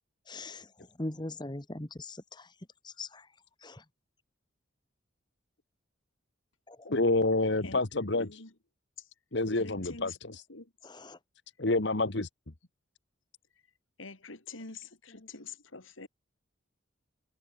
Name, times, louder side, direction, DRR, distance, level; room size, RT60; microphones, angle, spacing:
voice 1, 0.3-0.7 1.0-2.5 2.8-3.3 3.6-3.8 6.7-6.9 10.8-11.2, left 2 dB, 20° left, 1.3 m, -41 dB
voice 2, 6.8-8.4 9.3-10.4 11.6-12.3, left 2 dB, 60° left, 1.5 m, -28 dB
voice 3, 7.6-8.5 9.0-9.1 9.5-10.7 14.0-16.1, left 4 dB, 85° left, 3.2 m, -46 dB
head